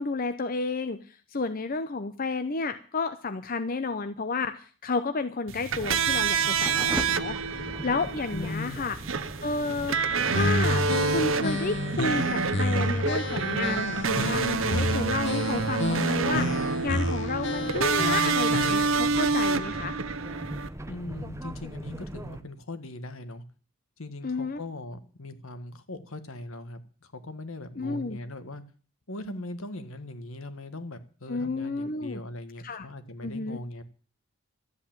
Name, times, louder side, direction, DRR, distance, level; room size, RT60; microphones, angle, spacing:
voice 1, 0.0-9.0 9.4-10.0 10.3-10.8 11.1-19.9 24.2-24.6 27.8-28.2 31.3-32.2 32.6-32.9 33.2-33.6, left 3 dB, 40° left, 10 dB, 0.7 m, -31 dB
sound 1, 5.5-20.7, right 4 dB, 65° right, 0.9 m, -28 dB
sound 2, 5.7-22.4, right 1 dB, 15° right, 0.8 m, -39 dB
voice 2, 8.3-8.8 20.9-23.4 24.0-28.6 29.1-33.8, left 2 dB, 70° left, 10 dB, 1.6 m, -40 dB
sound 3, 10.3-19.1, left 1 dB, 55° left, 1.4 m, -31 dB
13.0 x 8.4 x 8.8 m, 0.41 s
head